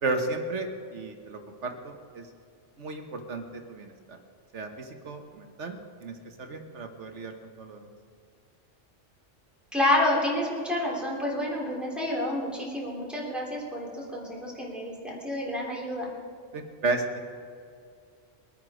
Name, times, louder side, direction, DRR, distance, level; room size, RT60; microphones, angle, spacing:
voice 1, 0.0-2.3 2.8-4.2 4.5-7.8 16.5-17.2, right 3 dB, 70° right, 5 dB, 1.6 m, -34 dB
voice 2, 9.7-16.1, left 1 dB, ahead, -5 dB, 3.4 m, -29 dB
22.5 x 9.2 x 5.0 m, 2.2 s
omnidirectional pair, 1.3 m